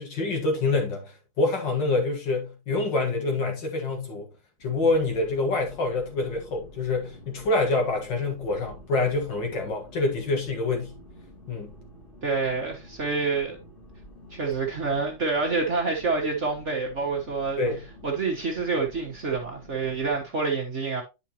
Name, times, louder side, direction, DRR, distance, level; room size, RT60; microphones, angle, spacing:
voice 1, 0.0-4.3 4.6-11.0 11.5-11.7 17.6-17.8, left 3 dB, 60° left, 2.3 m, -26 dB
sound 1, 4.6-20.3, equal, 25° left, 2.0 m, -49 dB
voice 2, 12.2-13.6 14.3-17.6 18.0-21.0, right 4 dB, 40° right, 1.4 m, -27 dB
9.7 x 5.4 x 2.9 m
omnidirectional pair, 2.3 m